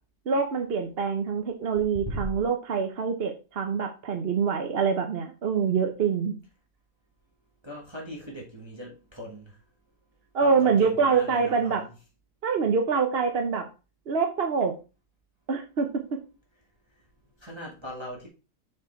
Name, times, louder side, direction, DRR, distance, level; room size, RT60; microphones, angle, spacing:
voice 1, 0.3-6.3 10.3-11.8 12.4-13.6 14.1-14.7 15.5-16.2, right 5 dB, 50° right, 0.9 m, -25 dB
voice 2, 7.6-9.6 10.4-11.9 17.4-18.3, equal, 15° right, 1.6 m, -39 dB
7.1 x 4.8 x 4.4 m
omnidirectional pair, 1.6 m